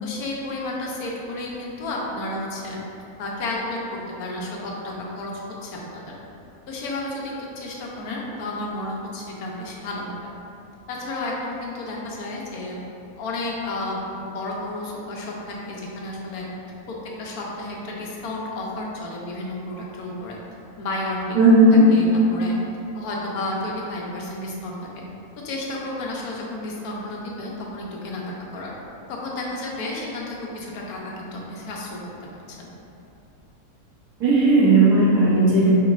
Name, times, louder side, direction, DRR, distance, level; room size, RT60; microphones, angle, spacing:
voice 1, 0.0-2.8 3.2-3.8 4.2-5.3 5.6-6.1 6.7-10.1 10.9-12.8 13.2-16.5 16.9-20.4 20.8-21.6 21.9-22.5 22.9-24.8 25.4-28.7 29.2-32.0 32.5-32.7, left 2 dB, 80° left, -3 dB, 1.2 m, -32 dB
voice 2, 21.3-21.8 34.2-35.7, right 2 dB, 85° right, -10 dB, 1.7 m, -15 dB
5.1 x 3.0 x 2.5 m, 2.8 s
omnidirectional pair, 1.6 m